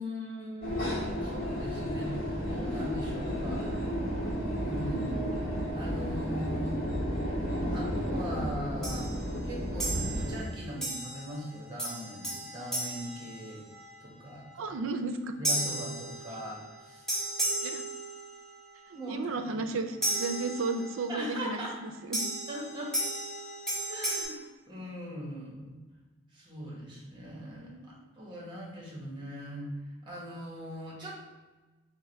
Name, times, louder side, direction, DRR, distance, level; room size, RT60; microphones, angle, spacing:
voice 1, 0.0-3.7 4.6-5.5 5.7-6.8 7.7-9.1 9.4-13.6 14.0-14.7 15.4-17.0 18.9-19.5 21.1-21.8 22.5-22.9 23.9-25.8 26.3-31.2, equal, 25° right, -4 dB, 1.2 m, -40 dB
sound 1, 0.6-10.4, equal, 80° left, 1.3 m, -32 dB
sound 2, 8.8-9.2 9.8-10.4 10.8-11.4 11.8-13.9 15.4-16.6 17.1-18.5 20.0-21.0 22.1-24.2, right 1 dB, 5° left, 1.1 m, -34 dB
voice 2, 14.6-15.3 17.6-17.8 18.9-22.2 27.5-28.0, right 3 dB, 80° right, 6 dB, 0.4 m, -34 dB
3.6 x 2.6 x 4.4 m, 1.2 s
head